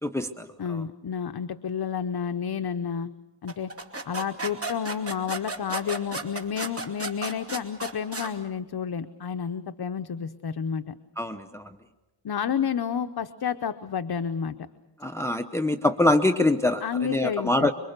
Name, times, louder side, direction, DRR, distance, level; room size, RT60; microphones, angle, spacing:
voice 1, 0.0-0.8 11.2-11.8 15.0-17.7, left 2 dB, 5° left, 8 dB, 0.8 m, -25 dB
voice 2, 0.6-3.1 3.4-3.7 4.0-10.9 12.2-14.5 16.8-17.7, left 7 dB, 60° left, 9 dB, 0.8 m, -30 dB
sound 1, 3.5-8.3, right 2 dB, 30° right, 2.7 m, -34 dB
26.5 x 24.0 x 6.7 m, 1.1 s
wide cardioid pair, 85°, 44 cm